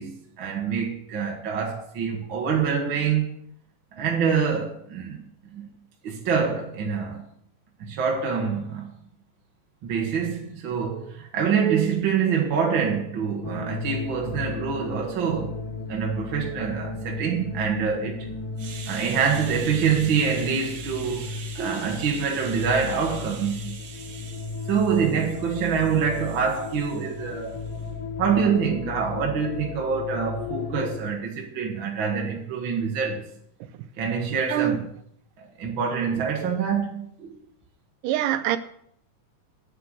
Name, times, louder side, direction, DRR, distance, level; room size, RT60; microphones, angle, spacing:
voice 1, 0.0-3.3 4.0-5.2 5.5-5.6 6.0-7.2 7.8-8.9 9.8-15.6 15.9-18.3 18.6-27.6 28.2-33.2 34.0-34.9 35.4-37.4, right 6 dB, 50° right, 1.6 m, -26 dB
sound 1, 13.4-31.0, left 4 dB, 85° left, 3.2 m, -35 dB
voice 2, 38.0-38.6, right 12 dB, 90° right, 2.3 m, -23 dB
9.5 x 7.8 x 6.4 m
omnidirectional pair, 3.7 m